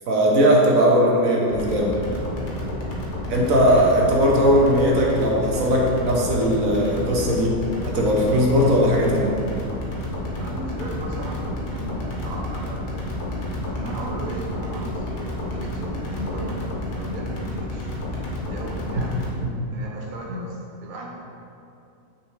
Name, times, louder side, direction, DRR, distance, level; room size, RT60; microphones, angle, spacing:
voice 1, 0.1-2.0 2.6-2.7 3.3-7.6 7.8-9.4 19.0-19.1 19.4-19.7 20.3-20.4, equal, 75° right, -2 dB, 1.4 m, -19 dB
sound 1, 1.5-19.3, left 1 dB, 75° left, 1.6 m, -30 dB
voice 2, 10.4-13.1 13.7-17.9 18.5-19.3 19.7-21.1, right 1 dB, 40° right, -2 dB, 0.9 m, -35 dB
6.1 x 4.3 x 4.7 m, 2.7 s
omnidirectional pair, 1.5 m